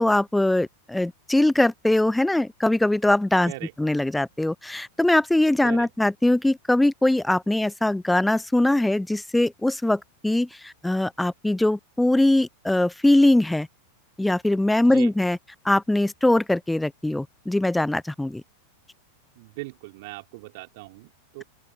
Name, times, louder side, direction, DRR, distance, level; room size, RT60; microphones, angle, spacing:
voice 1, 0.0-3.5 3.8-13.7 14.2-15.4 15.6-18.4, left 1 dB, 5° left, 0.6 m, -21 dB
voice 2, 14.8-15.1 19.4-21.4, right 23 dB, 50° right, 3.3 m, -39 dB
open air
figure-of-eight pair, 90°, 0 cm